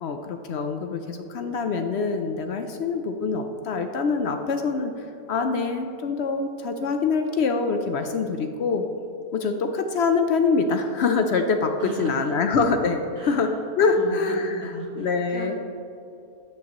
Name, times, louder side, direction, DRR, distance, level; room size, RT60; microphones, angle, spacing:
voice 1, 0.0-8.8 9.3-15.5, left 4 dB, 65° left, 6 dB, 0.6 m, -25 dB
voice 2, 11.8-12.3 13.2-13.5 13.9-15.5, right 2 dB, 85° right, -3 dB, 2.2 m, -37 dB
12.5 x 7.7 x 2.9 m, 2.7 s
omnidirectional pair, 1.6 m